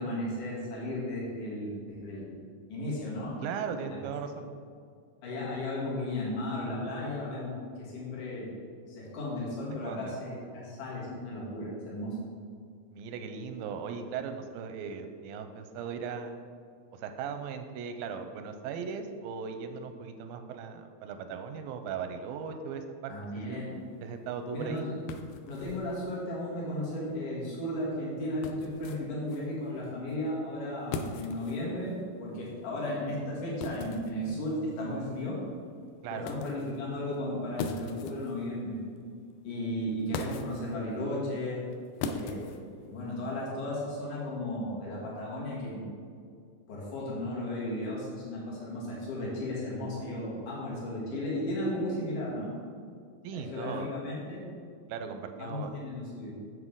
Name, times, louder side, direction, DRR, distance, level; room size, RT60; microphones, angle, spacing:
voice 1, 0.0-2.4 2.7-3.3 3.9-4.0 5.2-7.5 7.8-8.6 8.9-12.2 23.1-23.8 24.5-24.8 25.5-35.4 36.1-38.8 39.4-41.6 42.1-42.6 42.9-45.8 46.7-52.5 53.3-54.4 55.4-56.4, left 1 dB, 60° left, -6 dB, 3.4 m, -35 dB
voice 2, 3.4-4.5 9.9-10.1 12.9-16.4 16.9-23.6 24.0-24.9 36.0-36.3 53.2-53.9 54.9-55.7, right 6 dB, 90° right, 7 dB, 2.4 m, -38 dB
sound 1, 23.7-43.3, left 4 dB, 80° left, 2.1 m, -43 dB
8.2 x 7.5 x 3.8 m, 2.2 s
omnidirectional pair, 4.1 m